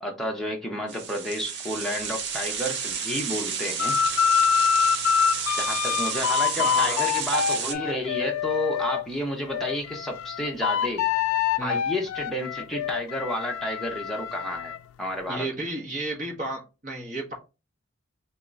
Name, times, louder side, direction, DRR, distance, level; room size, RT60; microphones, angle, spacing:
voice 1, 0.0-4.0 5.6-11.1 11.6-15.5, equal, ahead, 0.8 m, -31 dB
sound 1, 0.9-7.7, right 6 dB, 55° right, 0.6 m, -31 dB
sound 2, 3.8-9.0 9.5-14.8, left 8 dB, 90° left, 0.3 m, -26 dB
voice 2, 6.6-7.0 11.6-11.8 15.3-17.3, right 1 dB, 40° right, 1.3 m, -32 dB
3.1 x 2.9 x 3.7 m
head